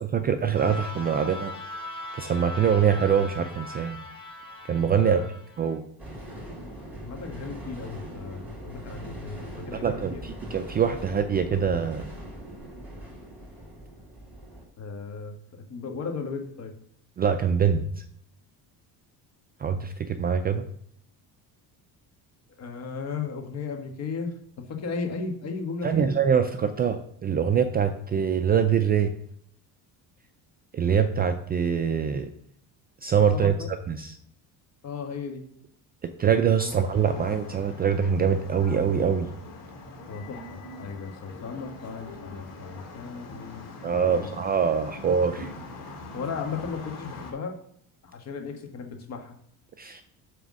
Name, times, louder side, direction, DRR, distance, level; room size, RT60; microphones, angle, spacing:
voice 1, 0.0-1.5 2.2-4.0 4.7-5.2 5.6-5.8 9.7-12.0 17.2-18.0 19.6-20.7 25.8-29.1 30.7-32.3 33.0-33.5 33.9-34.2 36.0-39.3 43.8-45.5 49.8-50.0, right 7 dB, 25° right, 7 dB, 0.4 m, -24 dB
sound 1, 0.5-5.8, left 1 dB, 10° left, 1.5 m, -39 dB
voice 2, 4.9-5.3 7.0-10.2 14.8-16.7 22.6-26.1 33.3-33.7 34.8-35.4 36.6-36.7 40.1-43.6 43.9-44.3 46.1-47.5 48.0-49.3, left 5 dB, 45° left, 4 dB, 1.5 m, -35 dB
sound 2, 6.0-14.6, equal, 5° right, 2.9 m, -41 dB
sound 3, 36.7-47.3, left 2 dB, 60° left, 2.6 m, -42 dB
9.3 x 3.5 x 6.3 m, 0.67 s
cardioid pair, 150°, 38 cm